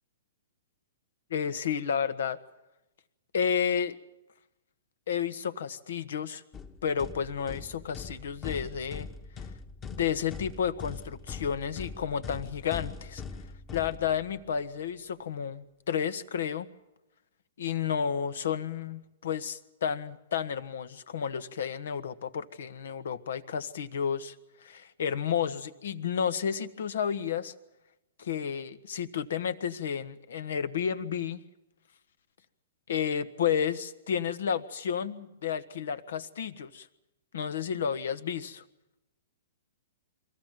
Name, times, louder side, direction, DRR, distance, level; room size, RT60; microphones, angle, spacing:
voice 1, 1.3-2.4 3.3-4.0 5.1-6.4 6.8-9.1 9.9-13.2 13.7-16.7 17.6-24.3 24.6-27.5 28.2-31.4 32.9-36.9 37.3-38.6, left 7 dB, 70° left, 13 dB, 1.3 m, -31 dB
sound 1, 6.5-14.5, left 5 dB, 25° left, 1.5 m, -42 dB
23.5 x 14.5 x 9.2 m, 0.97 s
hypercardioid pair, 125°, 0 cm